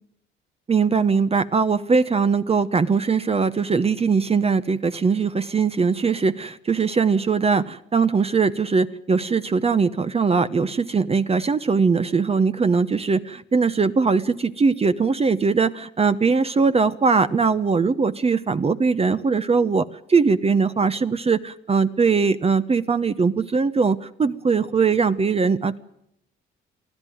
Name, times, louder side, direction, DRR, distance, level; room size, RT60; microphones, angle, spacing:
voice 1, 0.7-25.8, right 5 dB, 30° right, 12 dB, 1.0 m, -21 dB
24.0 x 14.5 x 9.3 m, 0.77 s
cardioid pair, 90°, 20 cm